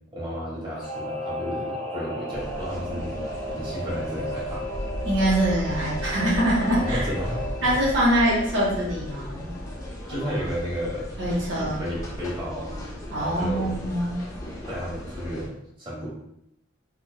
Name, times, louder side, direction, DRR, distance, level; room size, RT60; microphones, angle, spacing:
voice 1, 0.1-3.2 3.5-4.7 6.8-7.7 10.1-11.1 11.5-12.8 13.2-13.8 14.7-16.1, equal, 25° right, -7 dB, 0.9 m, -32 dB
Singing / Musical instrument, 0.8-10.8 11.2-11.3, equal, 35° left, 0.7 m, -36 dB
sound 1, 2.3-15.5, left 1 dB, 15° left, 0.3 m, -38 dB
sound 2, 4.7-9.7, equal, 85° left, 0.5 m, -35 dB
voice 2, 5.0-7.1 7.6-9.5 11.2-11.8 13.1-14.2, right 1 dB, 65° right, -5 dB, 0.7 m, -24 dB
2.8 x 2.1 x 2.2 m, 0.79 s
head